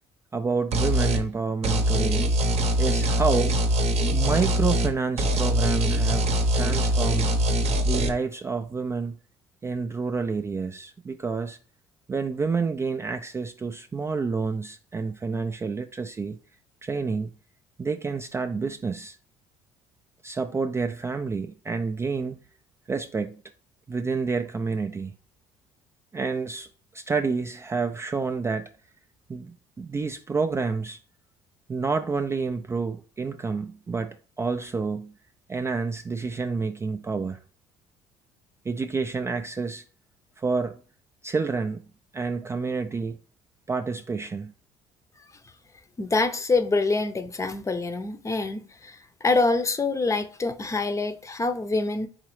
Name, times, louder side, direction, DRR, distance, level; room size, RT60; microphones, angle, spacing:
voice 1, 0.3-2.3 2.8-3.6 4.1-6.3 6.5-7.4 7.8-9.2 9.6-11.6 12.1-16.4 16.8-17.3 17.8-19.2 20.2-22.4 22.9-23.4 23.9-25.1 26.1-26.7 26.9-28.7 29.3-31.0 31.7-35.1 35.5-37.4 38.7-39.8 40.4-40.8 41.2-41.8 42.1-43.2 43.7-44.5, right 4 dB, 20° right, 0.3 m, -29 dB
sound 1, 0.7-1.2 1.6-4.9 5.2-8.1, right 1 dB, 50° right, 0.8 m, -23 dB
voice 2, 46.0-52.1, left 3 dB, 25° left, 0.6 m, -25 dB
4.0 x 3.7 x 3.1 m
supercardioid pair, 70°, 13 cm